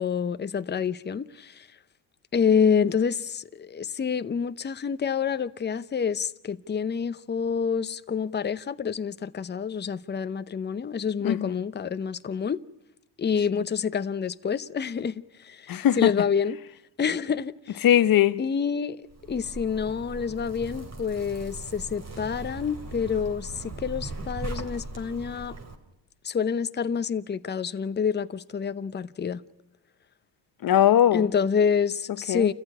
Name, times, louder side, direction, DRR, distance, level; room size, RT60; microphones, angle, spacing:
voice 1, 0.0-1.7 2.3-12.6 13.2-16.6 17.0-17.8 18.4-19.0 19.3-25.5 26.2-29.4 31.1-32.5, left 6 dB, 25° left, 0.8 m, -27 dB
voice 2, 15.7-16.1 17.8-18.4 30.6-31.3 32.3-32.5, left 11 dB, 50° left, 1.0 m, -20 dB
Zipper (clothing), 19.1-25.7, right 2 dB, 35° right, 3.6 m, -39 dB
28.0 x 14.5 x 9.9 m
cardioid pair, 90°, 45 cm